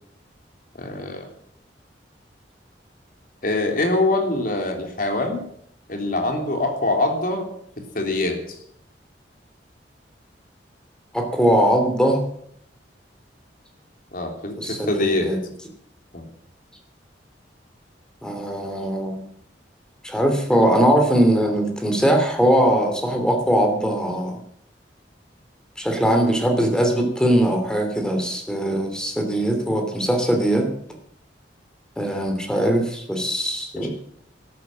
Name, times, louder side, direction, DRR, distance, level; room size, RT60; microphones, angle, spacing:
voice 1, 0.8-1.3 3.4-5.4 5.9-7.5 7.9-8.4 14.1-15.3 16.1-16.3, left 2 dB, 50° left, 3 dB, 3.5 m, -23 dB
voice 2, 11.1-12.2 14.6-15.4 18.2-19.2 20.0-24.4 25.8-30.7 32.0-33.9, right 1 dB, 5° left, 4 dB, 3.1 m, -20 dB
13.5 x 12.0 x 7.6 m, 0.69 s
head